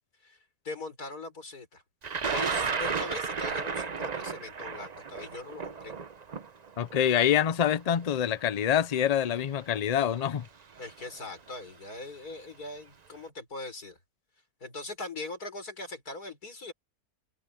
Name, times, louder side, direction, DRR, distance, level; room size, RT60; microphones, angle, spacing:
voice 1, 0.6-1.8 2.3-5.9 10.8-14.0 14.6-16.7, left 2 dB, 85° left, 5.7 m, -41 dB
Thunder, 2.0-8.0 9.0-9.1 10.2-10.5 10.8-11.2, right 5 dB, 35° right, 0.7 m, -33 dB
voice 2, 6.8-10.4, left 9 dB, 60° left, 0.4 m, -26 dB
omnidirectional pair, 1.6 m